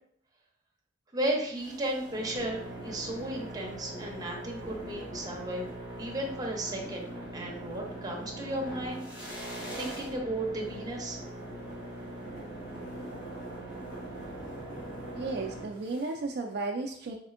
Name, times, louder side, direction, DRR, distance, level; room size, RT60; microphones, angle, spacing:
voice 1, 1.1-5.7 6.0-9.4 9.8-11.2, right 1 dB, 20° right, -1 dB, 0.7 m, -34 dB
sound 1, 1.5-16.1, right 1 dB, 70° left, 1.4 m, -41 dB
voice 2, 15.1-17.2, right 3 dB, 55° right, 2 dB, 0.3 m, -34 dB
4.2 x 3.5 x 2.5 m, 0.65 s
head